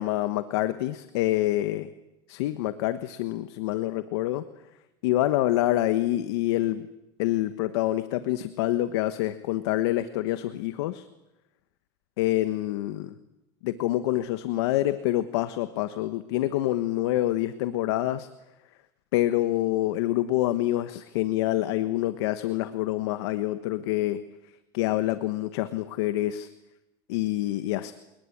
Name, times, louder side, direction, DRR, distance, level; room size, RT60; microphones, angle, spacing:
voice 1, 0.0-1.9 2.3-4.4 5.0-6.9 7.2-11.1 12.2-13.1 13.6-18.3 19.1-24.2 24.7-26.5 27.1-27.9, left 15 dB, 80° left, 11 dB, 1.2 m, -26 dB
27.5 x 20.0 x 8.6 m, 0.98 s
supercardioid pair, 120°, 14 cm